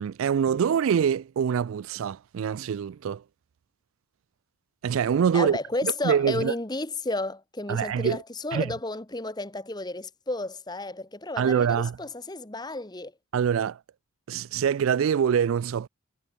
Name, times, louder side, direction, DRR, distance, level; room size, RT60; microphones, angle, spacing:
voice 1, 0.0-3.2 4.8-6.5 7.7-8.2 8.5-8.7 11.4-12.0 13.3-13.8 14.3-15.9, right 7 dB, 75° right, 0.3 m, -25 dB
voice 2, 5.3-13.1, left 2 dB, 20° left, 1.2 m, -32 dB
head